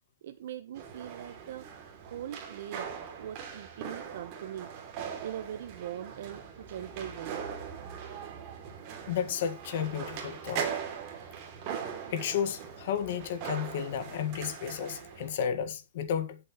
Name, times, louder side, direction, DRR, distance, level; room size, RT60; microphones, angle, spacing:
voice 1, 0.2-1.7 2.0-4.7 5.2-7.4, right 10 dB, 50° right, 0.9 m, -41 dB
sound 1, 0.7-15.3, right 7 dB, 30° right, 2.7 m, -40 dB
voice 2, 9.1-10.7 12.1-16.4, left 8 dB, 45° left, 1.6 m, -32 dB
17.0 x 7.6 x 3.1 m
supercardioid pair, 180°, 0 cm